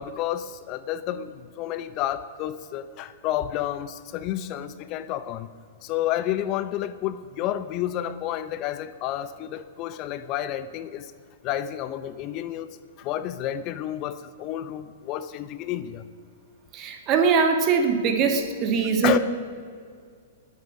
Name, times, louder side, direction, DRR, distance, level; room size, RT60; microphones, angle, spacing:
voice 1, 0.0-5.5 5.8-11.1 11.4-12.7 13.0-16.1 19.0-19.2, left 12 dB, 40° left, 13 dB, 0.7 m, -30 dB
voice 2, 16.7-19.2, right 5 dB, 35° right, 5 dB, 2.1 m, -22 dB
20.0 x 8.3 x 6.5 m, 2.2 s
hypercardioid pair, 120°, 0 cm